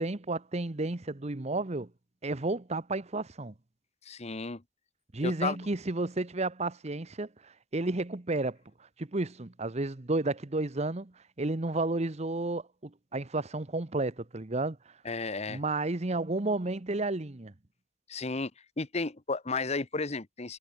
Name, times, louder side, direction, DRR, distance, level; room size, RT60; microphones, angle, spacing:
voice 1, 0.0-1.9 2.2-3.5 5.1-8.6 9.0-14.8 15.5-17.5, right 2 dB, 35° right, 1.0 m, -32 dB
voice 2, 4.0-4.6 5.2-5.6 15.0-15.6 18.1-18.5 18.8-20.6, left 3 dB, 35° left, 1.1 m, -33 dB
head